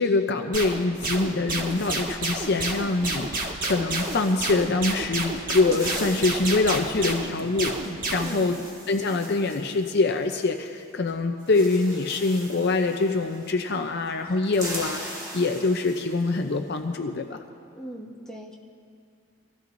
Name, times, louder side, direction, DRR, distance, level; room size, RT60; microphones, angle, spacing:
voice 1, 0.0-3.3 3.6-7.8 8.1-8.6 8.9-17.4, left 3 dB, 50° left, 5 dB, 0.6 m, -24 dB
sound 1, 0.5-8.4, right 2 dB, 40° right, 1.6 m, -30 dB
sound 2, 1.5-3.2 3.4-3.6 3.9-4.8 5.3-10.8 11.1-11.2 11.4-13.8 14.1-16.5, right 1 dB, 15° right, 1.9 m, -41 dB
voice 2, 8.1-8.6 17.7-18.6, right 1 dB, 5° left, -5 dB, 1.7 m, -40 dB
24.0 x 16.0 x 2.6 m, 2.3 s
head